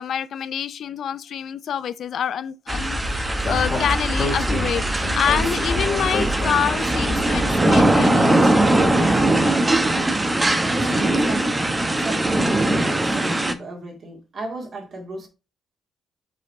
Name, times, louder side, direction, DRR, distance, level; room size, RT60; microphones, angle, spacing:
voice 1, 0.0-8.5 10.3-10.4, left 8 dB, 65° left, 0.5 m, -27 dB
Speech, 2.7-7.6, left 1 dB, 40° left, 2.3 m, -27 dB
sound 1, 2.7-13.5, right 1 dB, 15° right, 0.9 m, -21 dB
voice 2, 11.9-15.3, right 2 dB, 50° right, 2.2 m, -35 dB
5.6 x 4.1 x 4.2 m
cardioid pair, 90°, 0 cm